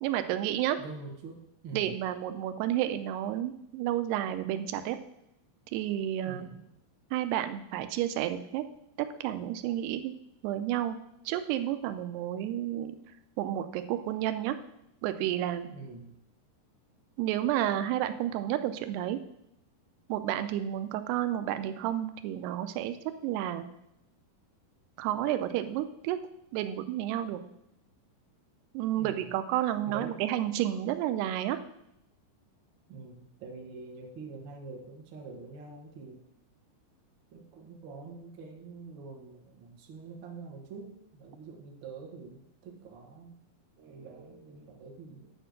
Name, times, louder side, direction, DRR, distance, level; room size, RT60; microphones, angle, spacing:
voice 1, 0.0-0.8 1.7-5.0 5.7-6.5 7.1-8.6 9.2-10.1 10.4-11.0 11.3-12.9 13.4-14.6 15.0-15.7 17.2-19.2 20.1-23.0 23.2-23.7 25.0-26.2 26.5-27.4 28.7-31.6, right 12 dB, 85° right, 10 dB, 2.7 m, -31 dB
voice 2, 0.8-2.0 6.2-6.7 15.7-16.1 28.9-29.3 29.9-30.2 32.9-36.2 37.3-43.4 43.8-45.3, right 4 dB, 70° right, 0 dB, 1.1 m, -45 dB
9.9 x 4.4 x 6.5 m, 0.80 s
omnidirectional pair, 4.6 m